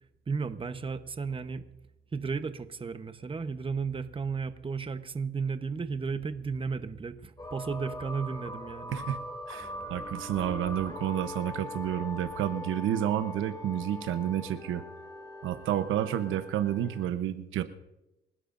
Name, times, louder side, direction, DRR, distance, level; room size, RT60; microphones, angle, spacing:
voice 1, 0.3-1.6 2.1-9.0, right 5 dB, 25° right, 10 dB, 1.0 m, -34 dB
sound 1, 7.4-17.1, left 2 dB, 20° left, 2.8 m, -41 dB
voice 2, 8.9-14.8 15.4-17.6, right 11 dB, 85° right, 10 dB, 0.9 m, -30 dB
29.0 x 12.5 x 2.6 m, 0.95 s
cardioid pair, 90°, 20 cm